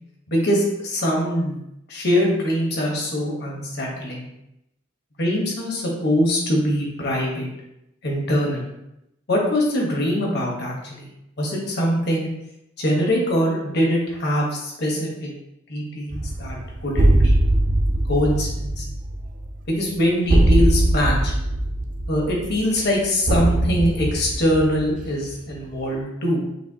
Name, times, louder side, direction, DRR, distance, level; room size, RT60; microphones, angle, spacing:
voice 1, 0.3-1.6 1.9-4.3 5.2-7.5 8.0-8.7 9.3-11.1 11.4-12.3 12.8-15.3 15.7-17.4 18.1-18.8 19.7-21.3 22.1-26.4, equal, 55° left, -2 dB, 1.1 m, -23 dB
sound 1, 16.1-25.5, right 1 dB, 40° right, 0.5 m, -21 dB
6.5 x 2.6 x 2.8 m, 0.84 s
head